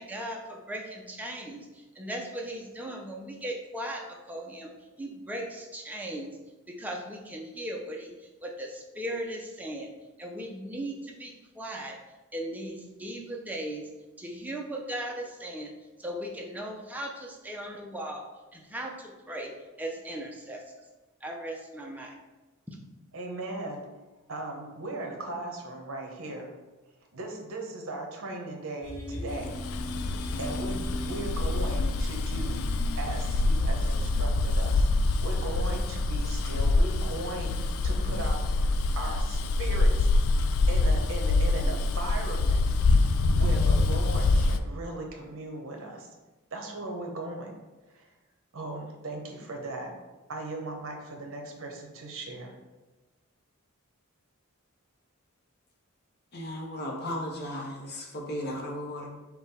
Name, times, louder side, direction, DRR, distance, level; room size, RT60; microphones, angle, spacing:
voice 1, 0.0-4.7 5.0-6.4 6.7-9.9 10.2-12.0 12.3-13.9 14.2-15.7 16.0-18.2 18.5-19.5 19.8-20.6 21.2-22.1 22.7-22.8, right 1 dB, 5° right, 0 dB, 0.6 m, -37 dB
voice 2, 23.1-23.9 24.3-26.5 27.1-29.5 30.4-32.6 33.0-34.9 35.2-42.6 43.3-46.1 46.5-47.5 47.9-48.1 48.5-49.9 50.3-52.5, right 2 dB, 65° right, 2 dB, 0.9 m, -38 dB
sound 1, 28.8-41.7, left 1 dB, 85° left, 0.9 m, -39 dB
Bus, 29.4-44.6, left 2 dB, 65° left, 0.3 m, -25 dB
voice 3, 56.3-59.1, left 1 dB, 50° left, 1 dB, 0.8 m, -35 dB
5.4 x 2.4 x 4.1 m, 1.1 s
head